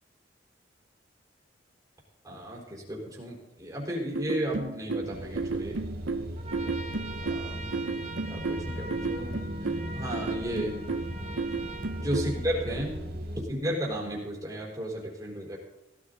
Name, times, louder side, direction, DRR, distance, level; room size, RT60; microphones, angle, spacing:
voice 1, 2.2-5.8 7.3-7.7 8.3-9.4 9.9-10.8 11.9-12.9 13.5-15.6, equal, 20° right, -2 dB, 4.3 m, -33 dB
sound 1, 4.1-12.4, right 4 dB, 80° right, 0.8 m, -33 dB
sound 2, 5.0-13.4, equal, 55° right, 1.9 m, -38 dB
Trumpet, 6.4-12.9, right 3 dB, 35° right, 1.5 m, -43 dB
16.5 x 13.0 x 4.0 m, 0.96 s
head